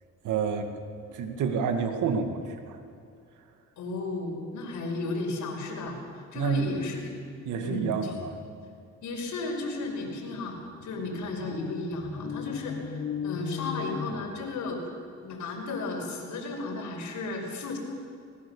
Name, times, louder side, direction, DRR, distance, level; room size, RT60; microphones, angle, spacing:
voice 1, 0.2-0.8 1.1-2.8 6.4-6.7 7.5-8.4, right 6 dB, 80° right, 5 dB, 2.4 m, -29 dB
voice 2, 3.8-6.0 6.3-7.1 7.6-7.9 9.0-10.6 10.8-14.9 15.2-17.8, left 3 dB, 75° left, 1 dB, 5.5 m, -34 dB
sound 1, 9.5-9.6 9.8-14.9, left 7 dB, 55° left, 1.8 m, -38 dB
24.0 x 19.5 x 7.2 m, 2.4 s
cardioid pair, 90°, 30 cm